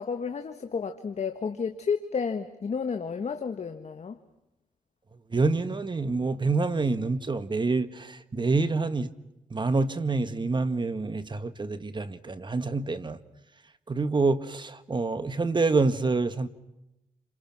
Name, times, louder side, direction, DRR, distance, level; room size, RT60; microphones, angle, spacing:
voice 1, 0.0-4.2, left 5 dB, 55° left, 1.5 m, -31 dB
voice 2, 5.3-9.1 9.5-13.2 13.9-16.5, right 3 dB, 35° right, 1.6 m, -27 dB
29.0 x 27.5 x 6.1 m
cardioid pair, 75°, 14 cm